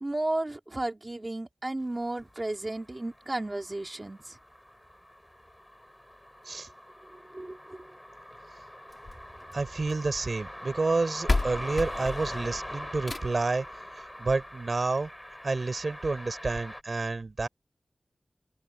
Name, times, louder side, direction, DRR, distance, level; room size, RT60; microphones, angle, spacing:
voice 1, 0.0-4.4 7.3-7.8, right 2 dB, 35° right, 2.7 m, -33 dB
sound 1, 2.1-16.8, equal, 10° left, 7.0 m, -43 dB
sound 2, 8.9-10.1 10.9-11.0 11.3-13.6 14.9-15.0 15.5-15.6 15.8-15.9 16.5-16.6, left 2 dB, 55° left, 1.7 m, -32 dB
voice 2, 9.5-13.7 13.9-15.1 15.4-17.5, right 3 dB, 65° right, 4.1 m, -29 dB
open air
wide cardioid pair, 70°, 0 cm